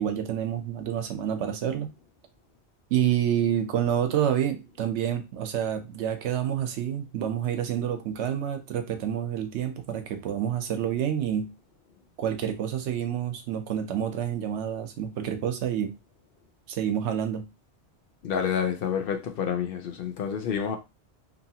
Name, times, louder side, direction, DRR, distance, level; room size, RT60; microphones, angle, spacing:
voice 1, 0.0-1.9 2.9-11.5 12.2-15.9 16.7-17.5, right 9 dB, 90° right, 0.9 m, -28 dB
voice 2, 18.2-20.8, left 7 dB, 65° left, 0.7 m, -28 dB
2.8 x 2.3 x 2.7 m
omnidirectional pair, 1.1 m